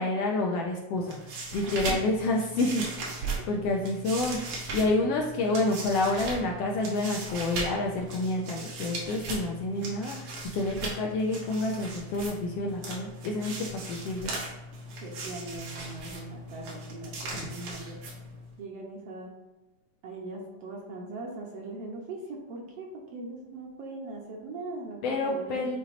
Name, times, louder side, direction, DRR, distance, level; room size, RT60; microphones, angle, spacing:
voice 1, 0.0-14.3 17.3-17.5 25.0-25.8, left 2 dB, 80° left, 0 dB, 1.5 m, -29 dB
sound 1, 0.9-18.5, right 2 dB, 85° right, 2.8 m, -38 dB
voice 2, 1.6-2.0 10.4-11.0 15.0-18.0 18.6-19.3 20.0-25.8, right 2 dB, 65° right, -1 dB, 1.8 m, -40 dB
9.0 x 4.0 x 2.6 m, 1.1 s
omnidirectional pair, 3.3 m